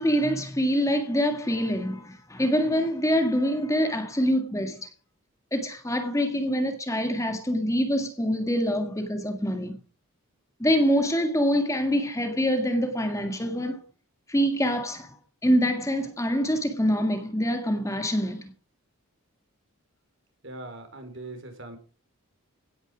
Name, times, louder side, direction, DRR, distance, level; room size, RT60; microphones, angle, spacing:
voice 1, 0.0-4.9 5.5-9.8 10.6-13.8 14.3-15.2 15.4-18.5, equal, 15° left, 1.7 m, -25 dB
voice 2, 20.4-21.8, right 2 dB, 55° right, 4.1 m, -40 dB
17.0 x 9.7 x 5.0 m
head